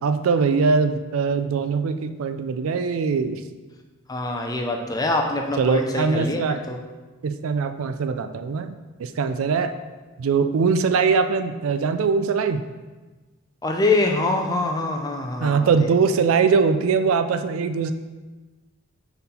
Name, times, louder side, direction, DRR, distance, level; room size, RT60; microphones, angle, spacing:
voice 1, 0.0-3.4 5.6-6.6 7.2-9.8 10.2-12.6 15.4-17.9, right 5 dB, 75° right, 9 dB, 0.4 m, -22 dB
voice 2, 4.1-6.8 13.6-15.9, left 2 dB, 20° left, 2 dB, 0.5 m, -24 dB
5.6 x 4.0 x 4.2 m, 1.3 s
head